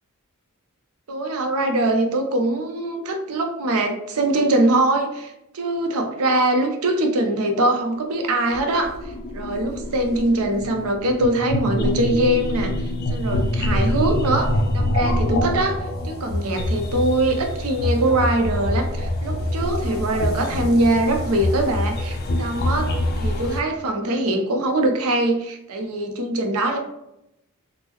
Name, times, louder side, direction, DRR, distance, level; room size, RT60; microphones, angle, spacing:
voice 1, 1.1-8.9 9.3-12.7 13.1-15.8 16.0-22.9 23.2-26.8, right 1 dB, 75° right, 4 dB, 0.6 m, -22 dB
sound 1, 8.2-23.6, left 1 dB, 45° left, 0.4 m, -25 dB
3.6 x 2.0 x 3.0 m, 0.84 s
head